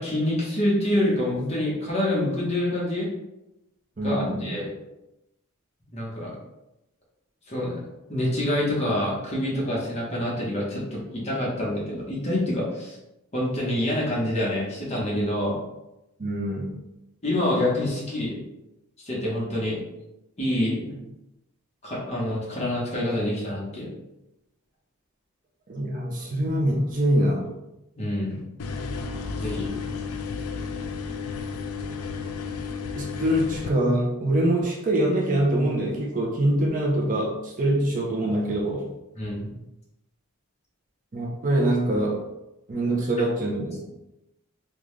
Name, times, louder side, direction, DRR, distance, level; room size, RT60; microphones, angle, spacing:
voice 1, 0.0-3.1 4.0-4.7 5.9-6.3 7.5-7.8 8.1-13.0 13.3-15.6 17.2-18.4 19.0-19.8 20.4-20.9 21.8-23.9 27.9-28.4 29.3-29.7 39.1-39.6, left 1 dB, 30° left, -5 dB, 1.1 m, -26 dB
voice 2, 4.0-4.5 16.2-16.7 25.7-27.5 32.9-38.9 41.1-42.2 42.7-43.9, right 1 dB, 40° right, -2 dB, 0.6 m, -24 dB
sound 1, 28.6-33.7, left 4 dB, 90° left, 0.4 m, -32 dB
3.7 x 2.4 x 3.2 m, 0.91 s
head